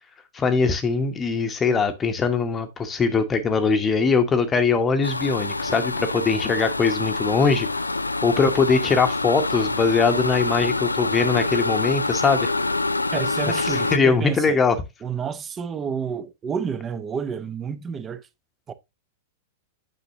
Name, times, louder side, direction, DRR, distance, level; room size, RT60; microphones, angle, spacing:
voice 1, 0.3-7.7 8.2-12.5 13.6-14.8, left 4 dB, 20° left, 1.0 m, -21 dB
sound 1, 5.0-14.0, left 3 dB, 80° left, 0.4 m, -26 dB
voice 2, 13.1-14.6 15.0-18.3 18.7-18.8, right 6 dB, 20° right, 0.8 m, -30 dB
9.0 x 5.9 x 2.7 m
figure-of-eight pair, 100°, 0 cm